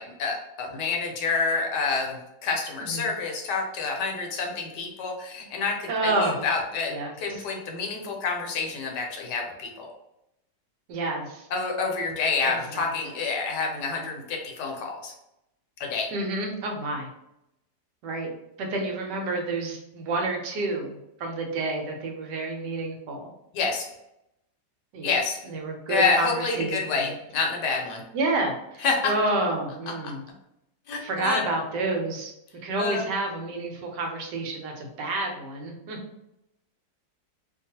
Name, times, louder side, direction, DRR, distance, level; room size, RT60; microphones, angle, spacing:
voice 1, 0.0-9.9 11.5-15.1 15.8-16.1 23.5-23.9 25.0-25.4 25.9-28.0 28.8-29.1 30.0-30.1 30.9-31.4 32.8-33.0, left 4 dB, 75° left, 1 dB, 1.2 m, -28 dB
voice 2, 2.8-3.1 5.9-6.4 6.9-7.4 10.9-11.5 12.4-12.9 16.1-17.1 18.0-18.3 18.6-23.3 24.9-25.1 25.4-27.1 28.1-30.2 31.0-32.3 32.6-36.0, right 2 dB, 75° right, 2 dB, 1.2 m, -29 dB
2.9 x 2.3 x 2.7 m, 0.84 s
omnidirectional pair, 1.9 m